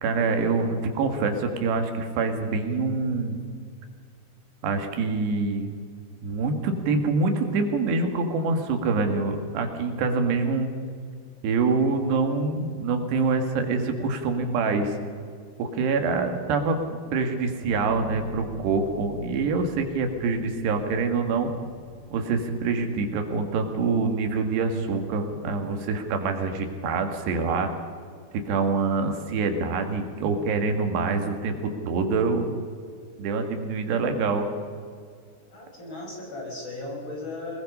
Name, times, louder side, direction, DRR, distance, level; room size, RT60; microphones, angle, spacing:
voice 1, 0.0-3.4 4.6-5.7 6.2-10.7 11.4-15.0 15.6-16.8 17.1-21.5 22.1-27.7 28.5-31.5 31.9-32.5 33.2-34.5, right 4 dB, 85° right, 5 dB, 4.0 m, -25 dB
sound 1, 17.6-28.2, equal, 85° left, 9.8 m, -47 dB
voice 2, 19.8-20.1 33.4-33.9 35.5-37.6, left 2 dB, 30° left, -2 dB, 6.3 m, -37 dB
24.0 x 21.0 x 5.5 m, 2.1 s
omnidirectional pair, 4.7 m